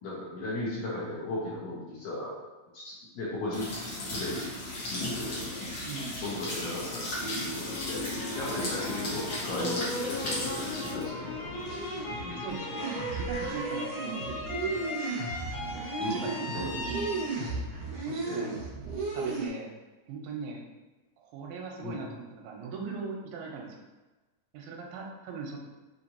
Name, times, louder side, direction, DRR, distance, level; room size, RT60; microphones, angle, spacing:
voice 1, 0.0-2.3 2.7-3.7 4.1-4.4 4.9-5.7 6.2-7.1 7.5-8.1 8.3-11.9 12.2-12.4 14.7-14.9 16.0-16.3 16.5-16.9 18.3-18.5 21.8-22.0, left 2 dB, 70° left, -7 dB, 2.0 m, -36 dB
sound 1, 3.5-13.2, left 1 dB, 55° left, 1.8 m, -36 dB
voice 2, 5.9-6.6 10.3-10.9 12.3-14.9 15.5-17.6 18.0-18.5 19.1-19.7 20.1-20.6 21.2-23.9 24.5-25.6, right 4 dB, 90° right, 0 dB, 2.4 m, -40 dB
sound 2, 7.5-18.5, left 1 dB, 85° left, 2.7 m, -38 dB
sound 3, 11.4-19.5, right 3 dB, 65° right, 1.3 m, -35 dB
5.8 x 3.1 x 2.7 m, 1.2 s
omnidirectional pair, 4.1 m